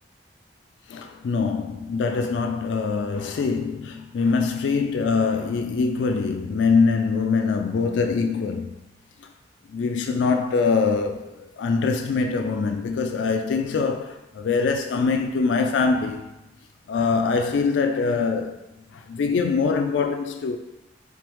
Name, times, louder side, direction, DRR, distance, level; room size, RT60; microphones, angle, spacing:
voice 1, 0.9-8.8 9.2-9.3 9.7-16.3 16.9-20.6, left 4 dB, 80° left, 0.3 m, -23 dB
3.7 x 3.5 x 3.0 m
head